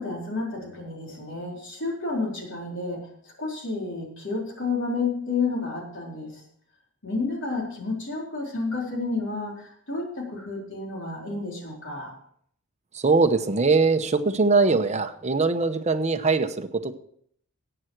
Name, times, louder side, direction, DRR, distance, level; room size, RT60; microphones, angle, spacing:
voice 1, 0.0-3.0 3.4-6.4 7.0-12.1, left 3 dB, 60° left, -1 dB, 3.9 m, -30 dB
voice 2, 12.9-16.9, right 4 dB, 30° right, 7 dB, 0.9 m, -22 dB
14.5 x 8.9 x 4.6 m, 0.66 s
head